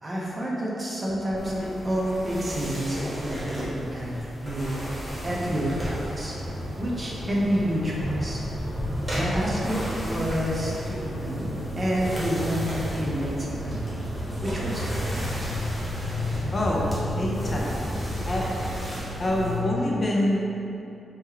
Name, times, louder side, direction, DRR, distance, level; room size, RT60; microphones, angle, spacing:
voice 1, 0.0-6.3 6.8-8.4 9.1-11.5 11.8-12.6 12.9-13.8 14.4-15.5, equal, 30° right, -5 dB, 0.6 m, -29 dB
sound 1, 1.3-19.6, equal, 10° right, 0.9 m, -35 dB
sound 2, 4.4-19.7, left 1 dB, 70° left, 0.7 m, -37 dB
sound 3, 5.1-18.8, equal, 70° right, 0.9 m, -35 dB
voice 2, 16.5-16.9 17.2-17.8 18.3-18.6 19.2-20.5, left 1 dB, 35° left, -4 dB, 0.4 m, -26 dB
3.5 x 2.2 x 3.3 m, 2.8 s
cardioid pair, 105°, 0 cm